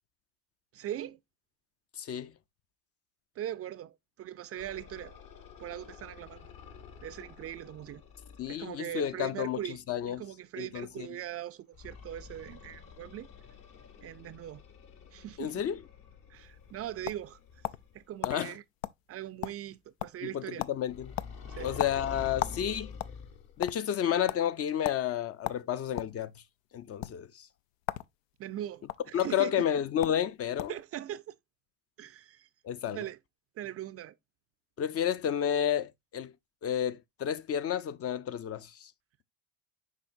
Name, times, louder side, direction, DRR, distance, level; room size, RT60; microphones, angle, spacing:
voice 1, 0.7-1.2 3.4-5.2 5.6-6.5 7.0-8.0 8.5-9.8 10.1-13.3 14.0-14.6 15.1-15.6 16.3-17.4 17.9-18.6 19.1-20.6 21.5-21.7 28.4-29.6 30.7-31.4 32.0-32.5 32.9-33.2 33.6-34.2, right 12 dB, 40° right, 0.4 m, -40 dB
voice 2, 2.0-2.3 8.4-9.6 9.9-10.2 10.6-11.1 15.4-15.8 18.2-18.5 20.2-21.1 21.6-22.9 23.6-26.3 26.7-27.5 29.1-30.7 32.6-33.0 34.8-36.3 36.6-38.9, left 9 dB, 40° left, 0.5 m, -31 dB
sound 1, 4.6-8.6 11.7-18.1 20.9-23.7, left 6 dB, 60° left, 1.7 m, -48 dB
sound 2, 16.5-17.9 18.2-18.4 18.8-19.0 19.3-19.7 20.0-20.3 20.6-20.8 21.2-22.6 22.9-23.8 24.3-24.4 24.8-25.0 25.4-26.2 26.9-27.1 27.8-28.1 28.4-29.0 29.7-29.8 30.0-30.2 30.6-30.8, left 14 dB, 85° left, 0.5 m, -35 dB
7.4 x 5.0 x 2.5 m
hypercardioid pair, 75°, 39 cm